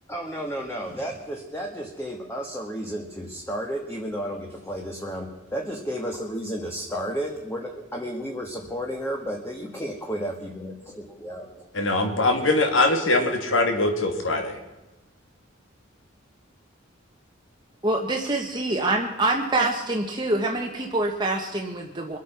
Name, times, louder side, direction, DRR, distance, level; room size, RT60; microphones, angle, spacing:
voice 1, 0.1-11.7, equal, 10° left, 1 dB, 1.4 m, -32 dB
voice 2, 11.7-14.6, left 2 dB, 75° left, 5 dB, 2.5 m, -22 dB
voice 3, 17.8-22.2, right 2 dB, 20° right, 1 dB, 1.2 m, -25 dB
23.5 x 8.4 x 5.8 m, 1.1 s
head